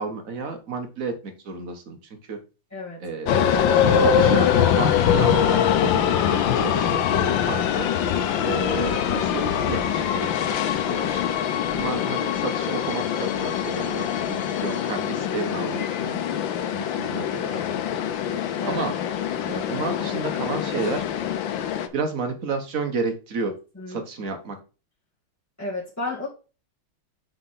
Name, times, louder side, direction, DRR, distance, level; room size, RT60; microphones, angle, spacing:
voice 1, 0.0-2.0 2.3-2.4 3.0-7.9 8.4-11.2 11.6-16.2 16.7-17.6 18.7-19.0 19.5-21.0 21.9-23.5 23.9-24.6, right 4 dB, 45° right, 6 dB, 1.4 m, -31 dB
voice 2, 2.7-3.0 14.6-14.8 18.6-18.9 23.4-24.4 25.6-26.3, left 2 dB, 10° left, -7 dB, 1.5 m, -34 dB
sound 1, 3.3-21.9, left 8 dB, 70° left, 1.4 m, -23 dB
6.0 x 4.4 x 5.6 m, 0.33 s
omnidirectional pair, 2.3 m